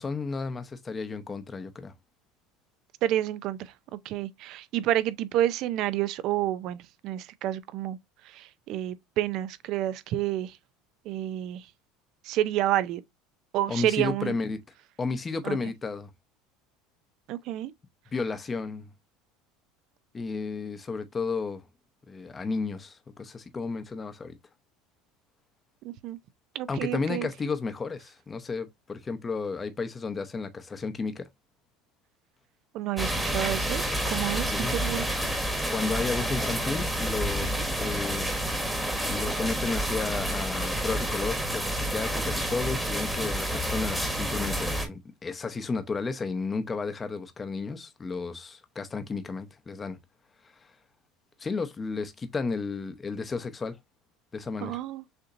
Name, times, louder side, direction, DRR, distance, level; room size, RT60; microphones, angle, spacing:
voice 1, 0.0-1.9 13.7-14.6 15.0-16.1 18.1-18.9 20.1-21.6 22.1-24.3 26.7-31.3 34.5-35.2 35.7-38.3 39.0-50.0 51.4-53.8 54.3-54.8, left 4 dB, 20° left, 0.7 m, -33 dB
voice 2, 3.0-3.7 4.0-8.0 8.2-10.6 11.1-11.7 12.2-13.0 13.5-14.3 15.4-15.6 17.3-17.7 25.8-26.2 26.5-27.3 32.7-35.0 54.6-55.0, right 13 dB, 55° right, 0.5 m, -29 dB
sound 1, 33.0-44.9, right 1 dB, 5° right, 1.2 m, -29 dB
6.6 x 2.8 x 2.5 m
supercardioid pair, 130°, 0 cm